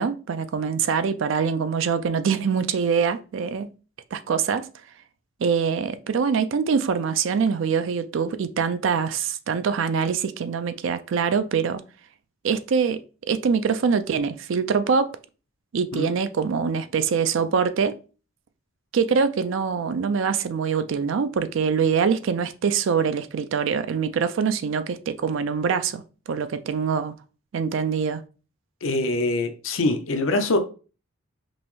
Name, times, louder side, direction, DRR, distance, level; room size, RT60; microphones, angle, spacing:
voice 1, 0.0-3.7 4.1-4.7 5.4-11.8 12.4-13.0 13.3-15.1 15.7-18.0 18.9-27.1 27.5-28.2, right 6 dB, 65° right, 0.4 m, -24 dB
voice 2, 28.8-30.6, left 2 dB, 75° left, 0.6 m, -24 dB
5.3 x 2.0 x 3.1 m
head